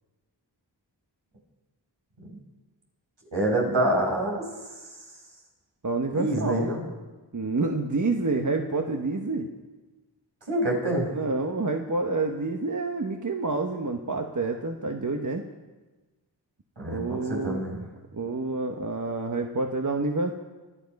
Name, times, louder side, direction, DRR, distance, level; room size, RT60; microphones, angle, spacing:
voice 1, 3.3-4.4 6.1-6.8 10.5-11.1 16.8-17.8, right 1 dB, 75° right, -1 dB, 5.2 m, -26 dB
voice 2, 5.8-6.7 7.3-9.5 11.1-15.4 16.9-17.6 18.1-20.3, right 3 dB, 45° right, 3 dB, 1.2 m, -28 dB
24.0 x 9.8 x 5.4 m, 1.2 s
wide cardioid pair, 50°, 43 cm